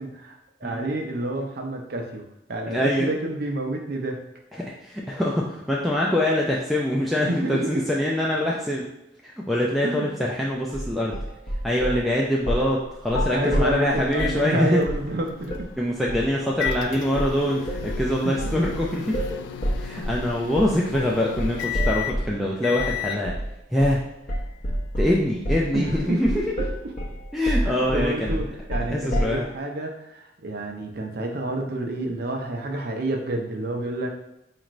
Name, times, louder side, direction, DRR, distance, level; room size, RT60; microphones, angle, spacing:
voice 1, 0.0-2.2 2.5-4.2 7.3-7.8 9.8-10.1 13.3-15.7 18.2-18.4 25.7-26.2 27.6-34.1, right 1 dB, 55° right, 2 dB, 0.5 m, -29 dB
voice 2, 2.7-3.1 4.5-8.9 9.2-11.2 11.6-14.8 15.8-19.4 19.8-23.4 23.7-24.0 25.0-26.5 27.3-28.5 28.9-29.5, left 1 dB, ahead, -4 dB, 0.3 m, -24 dB
sound 1, 10.7-12.0 12.5-12.7 13.1-14.4 14.9-15.1 15.5-15.7 16.1-16.3 16.6-16.9 17.2-22.4 22.8-23.0 23.3-23.5 23.8-24.0 24.3-29.4, equal, 45° left, 0.7 m, -28 dB
sound 2, 14.1-23.2, left 10 dB, 85° left, 0.3 m, -35 dB
4.3 x 2.5 x 3.0 m, 0.88 s
head